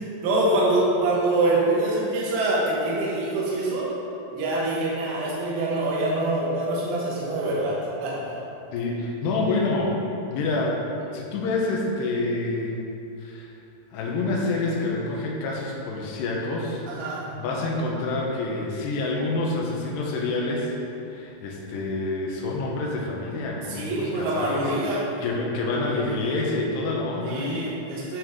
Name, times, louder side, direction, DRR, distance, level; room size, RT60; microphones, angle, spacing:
voice 1, 0.0-3.9 4.3-8.4 16.9-17.3 23.7-25.0 27.2-28.2, right 2 dB, 85° right, -6 dB, 4.0 m, -25 dB
voice 2, 8.7-10.0 10.3-10.8 11.1-12.8 13.2-13.5 13.9-20.7 21.0-27.7, left 2 dB, 75° left, -3 dB, 2.8 m, -27 dB
11.5 x 5.7 x 3.7 m, 2.7 s
omnidirectional pair, 5.6 m